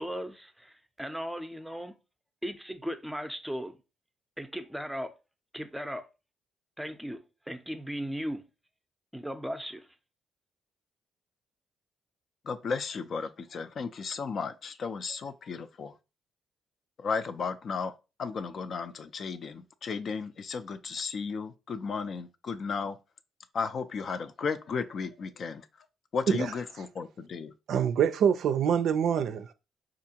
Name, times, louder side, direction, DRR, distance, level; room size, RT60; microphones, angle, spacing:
voice 1, 0.0-1.9 2.4-3.8 4.4-5.1 5.5-6.1 6.8-8.4 9.1-9.9, equal, 5° right, 0.5 m, -37 dB
voice 2, 12.4-15.9 17.0-17.9 18.2-23.0 23.5-25.7 26.1-27.5, left 5 dB, 55° left, 0.4 m, -34 dB
voice 3, 27.7-29.5, right 8 dB, 70° right, 0.4 m, -25 dB
4.4 x 2.5 x 2.8 m
cardioid pair, 90°, 0 cm